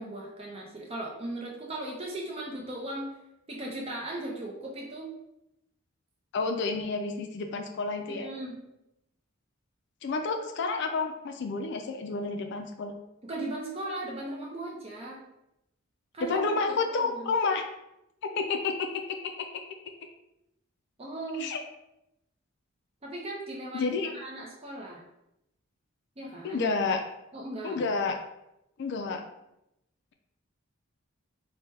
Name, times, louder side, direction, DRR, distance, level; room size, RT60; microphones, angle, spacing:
voice 1, 0.0-3.1 3.5-5.1 8.1-8.6 13.3-15.2 16.1-16.5 17.0-17.3 21.0-21.5 23.0-25.0 26.2-26.6 27.3-27.8, right 2 dB, 30° right, -2 dB, 0.6 m, -37 dB
voice 2, 6.3-8.3 10.0-12.9 16.2-17.7 18.3-19.3 21.4-21.6 23.7-24.1 26.4-27.0 27.6-28.2 28.8-29.2, left 4 dB, 60° left, 4 dB, 0.3 m, -30 dB
4.4 x 2.1 x 3.3 m, 0.86 s
head